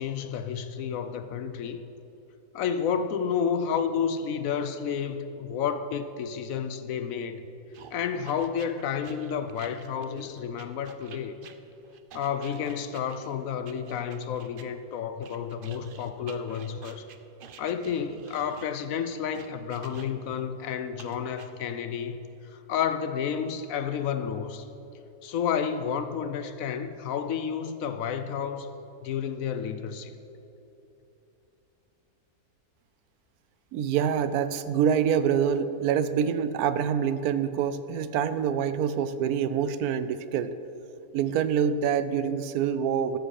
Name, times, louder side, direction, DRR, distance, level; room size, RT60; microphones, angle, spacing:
voice 1, 0.0-1.8 2.5-7.5 7.9-11.4 12.1-17.1 17.6-24.7 25.2-28.7 29.0-30.1, left 7 dB, 70° left, 10 dB, 0.9 m, -31 dB
sound 1, 7.7-14.7 15.2-20.4 21.0-21.5, right 6 dB, 60° right, 0.6 m, -49 dB
voice 2, 33.7-40.5 41.1-43.2, right 8 dB, 80° right, 12 dB, 1.1 m, -26 dB
12.5 x 7.6 x 6.4 m, 3.0 s
omnidirectional pair, 1.6 m